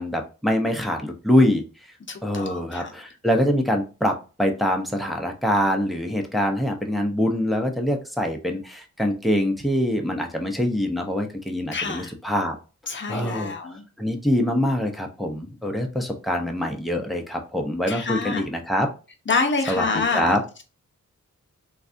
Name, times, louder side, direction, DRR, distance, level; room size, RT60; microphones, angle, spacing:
voice 1, 0.0-1.6 2.2-12.6 13.1-13.5 14.0-18.9 19.7-20.4, equal, ahead, 0.7 m, -24 dB
voice 2, 2.1-2.9 11.7-12.1 12.9-13.8 17.9-18.4 19.3-20.3, left 4 dB, 35° left, 0.8 m, -27 dB
3.3 x 2.4 x 2.5 m
cardioid pair, 55°, 31 cm